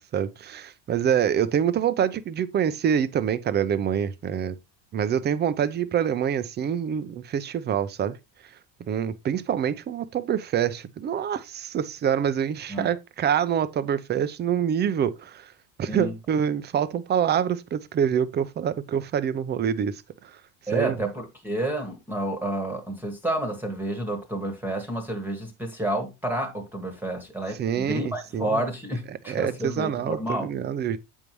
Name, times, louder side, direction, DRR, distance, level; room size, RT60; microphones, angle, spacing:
voice 1, 0.0-4.5 4.9-8.2 8.9-15.5 15.8-20.0 20.7-21.0 27.6-28.6 29.3-31.0, right 8 dB, 25° right, 0.5 m, -26 dB
voice 2, 20.7-30.5, right 1 dB, 5° right, 1.2 m, -30 dB
8.2 x 5.4 x 3.0 m
cardioid pair, 150°, 41 cm